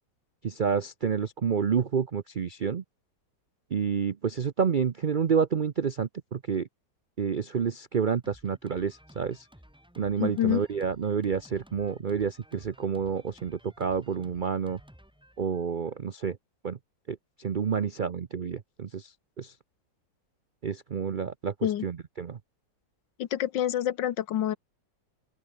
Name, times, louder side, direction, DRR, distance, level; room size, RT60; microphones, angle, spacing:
voice 1, 0.4-2.8 3.7-6.7 7.2-9.5 10.0-14.8 15.4-16.4 16.6-16.8 17.1-19.5 20.6-22.4, right 6 dB, 75° right, 0.4 m, -29 dB
Drum kit, 8.2-16.0, equal, 5° right, 3.4 m, -55 dB
voice 2, 10.2-10.6 21.6-21.9 23.2-24.6, left 11 dB, 90° left, 1.7 m, -27 dB
open air
omnidirectional pair, 1.9 m